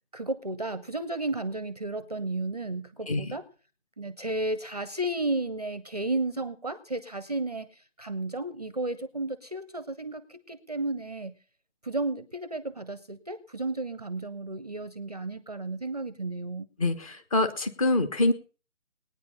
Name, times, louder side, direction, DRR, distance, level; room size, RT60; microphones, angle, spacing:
voice 1, 0.1-3.5 4.0-7.7 8.0-11.3 11.8-16.7, right 2 dB, 30° right, 15 dB, 0.6 m, -33 dB
voice 2, 16.8-18.3, left 2 dB, 25° left, 7 dB, 1.3 m, -25 dB
19.5 x 9.5 x 5.4 m, 0.37 s
figure-of-eight pair, 155°, 39 cm